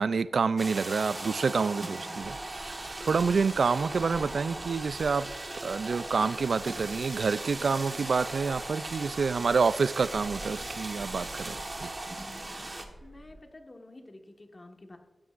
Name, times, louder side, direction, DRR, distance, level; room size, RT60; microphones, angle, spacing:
voice 1, 0.0-2.4 2.7-5.3 5.6-11.9, right 5 dB, 75° right, 16 dB, 0.3 m, -28 dB
sound 1, 0.6-12.9, right 2 dB, 30° right, 1.3 m, -38 dB
Gull seagull, 2.2-13.4, right 1 dB, 15° right, 3.9 m, -50 dB
sound 2, 7.6-8.2 8.9-9.3 10.0-11.5 12.3-12.7, left 2 dB, 60° left, 1.9 m, -52 dB
voice 2, 13.0-15.0, left 2 dB, 30° left, 3 dB, 1.5 m, -50 dB
14.5 x 12.5 x 2.5 m, 1.1 s
wide cardioid pair, 105°, 0 cm